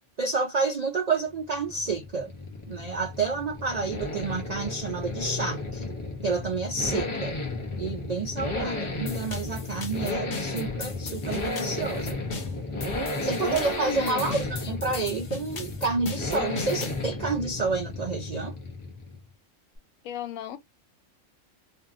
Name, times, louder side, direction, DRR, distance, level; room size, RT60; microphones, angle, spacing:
voice 1, 0.2-2.3 2.7-5.9 6.2-7.4 7.8-12.2 13.2-18.5, right 4 dB, 90° right, 0.3 m, -29 dB
sound 1, 1.3-19.3, left 2 dB, 35° left, 0.5 m, -33 dB
sound 2, 9.1-17.0, left 3 dB, 60° left, 1.1 m, -39 dB
voice 2, 13.8-14.3 20.0-20.6, left 11 dB, 90° left, 1.0 m, -37 dB
2.6 x 2.5 x 2.4 m
omnidirectional pair, 1.4 m